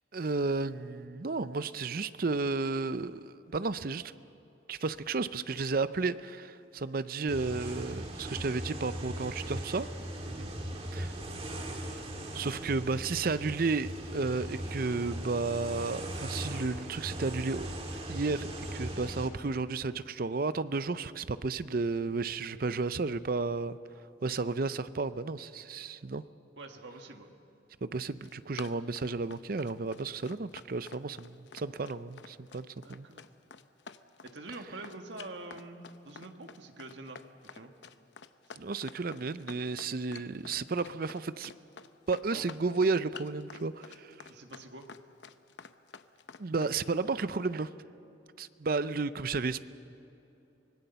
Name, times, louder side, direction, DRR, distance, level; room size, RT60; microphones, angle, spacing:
voice 1, 0.1-4.1 4.7-9.9 10.9-11.1 12.3-17.7 18.1-23.8 24.2-26.2 27.8-33.1 38.6-41.5 42.1-44.3 46.4-47.7 48.4-49.6, right 3 dB, 50° right, 14 dB, 0.6 m, -32 dB
sound 1, 7.3-19.3, right 1 dB, 30° right, 2.1 m, -39 dB
voice 2, 26.6-27.3 32.8-33.3 34.2-37.2 37.5-37.7 42.3-42.4 44.3-44.9, right 2 dB, 75° right, 5 dB, 1.6 m, -46 dB
Run, 28.0-46.8, left 5 dB, 70° left, 0.7 m, -49 dB
25.0 x 19.0 x 6.9 m, 2.9 s
head